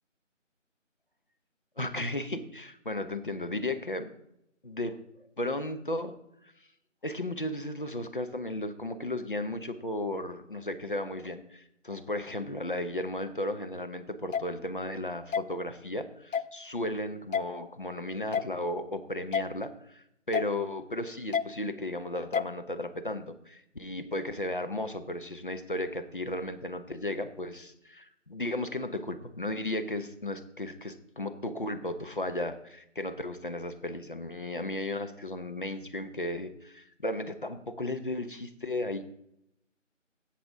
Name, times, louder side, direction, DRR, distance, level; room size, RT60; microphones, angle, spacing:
voice 1, 1.8-4.1 4.6-6.1 7.0-39.0, left 1 dB, 40° left, 8 dB, 0.8 m, -35 dB
sound 1, 14.3-14.4 15.3-15.4 16.3-16.5 17.3-17.4 18.3-18.5 19.3-19.5 20.3-20.5 21.3-21.5 22.3-22.5, left 7 dB, 85° left, 0.5 m, -28 dB
16.5 x 6.0 x 3.7 m, 0.79 s
figure-of-eight pair, 165°, 38 cm